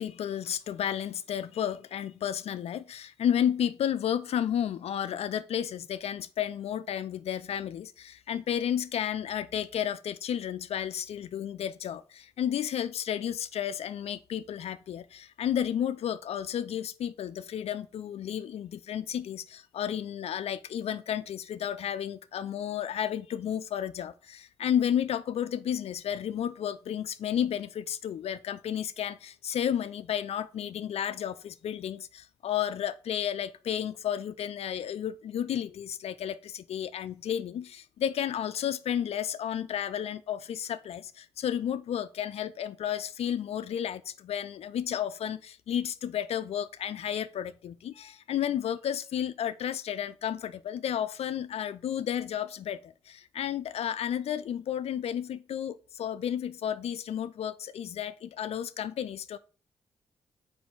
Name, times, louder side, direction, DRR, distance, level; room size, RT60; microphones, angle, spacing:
voice 1, 0.0-59.4, left 9 dB, 70° left, 0.4 m, -32 dB
6.0 x 5.2 x 3.9 m
supercardioid pair, 45°, 11 cm